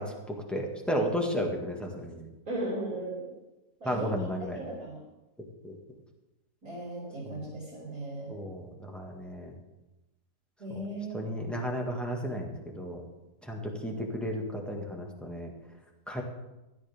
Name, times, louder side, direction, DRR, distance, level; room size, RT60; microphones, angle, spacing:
voice 1, 0.0-2.3 3.8-4.6 5.6-5.7 7.2-7.3 8.3-9.6 10.7-10.8 11.1-13.0 13.4-15.5 16.1-16.2, equal, ahead, 0 dB, 1.6 m, -33 dB
voice 2, 2.5-3.3 3.8-4.1 4.4-5.0 6.6-8.4 10.6-11.2, right 1 dB, 55° right, -6 dB, 3.7 m, -37 dB
17.0 x 11.0 x 3.6 m, 1.0 s
omnidirectional pair, 1.8 m